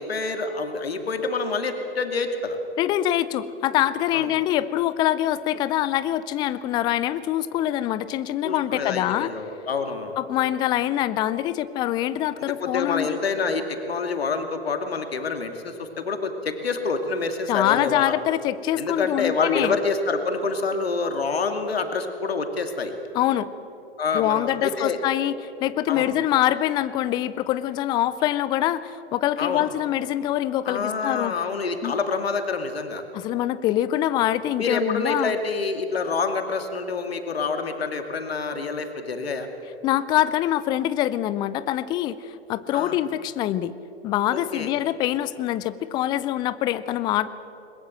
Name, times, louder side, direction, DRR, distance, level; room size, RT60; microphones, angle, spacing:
voice 1, 0.0-2.6 4.1-4.3 8.4-10.2 12.6-18.1 18.8-22.9 24.0-25.0 25.9-26.1 29.4-29.7 30.7-33.0 34.6-39.5 42.7-43.0 44.3-44.7, left 4 dB, 70° left, 6 dB, 2.5 m, -27 dB
voice 2, 2.8-9.3 10.2-13.2 17.5-19.8 23.1-23.5 24.1-25.3 25.6-31.3 31.8-31.9 33.1-35.3 39.8-43.7 44.0-47.3, left 13 dB, 15° left, 16 dB, 0.4 m, -24 dB
21.5 x 21.0 x 7.5 m, 3.0 s
figure-of-eight pair, 110°, 32 cm